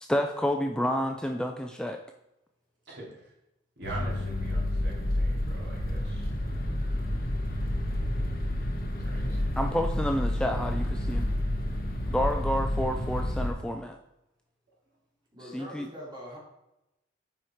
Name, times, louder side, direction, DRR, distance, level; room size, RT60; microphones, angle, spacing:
voice 1, 0.0-2.0 9.6-11.3 12.1-14.0 15.4-15.9, equal, 5° left, 4 dB, 0.3 m, -29 dB
voice 2, 2.9-3.3 3.8-6.7 9.0-9.4, right 2 dB, 60° right, -4 dB, 2.8 m, -44 dB
sound 1, 3.8-13.5, left 1 dB, 50° left, 1.1 m, -29 dB
voice 3, 15.3-16.4, equal, 25° right, -4 dB, 2.5 m, -43 dB
7.8 x 5.0 x 4.4 m, 0.90 s
head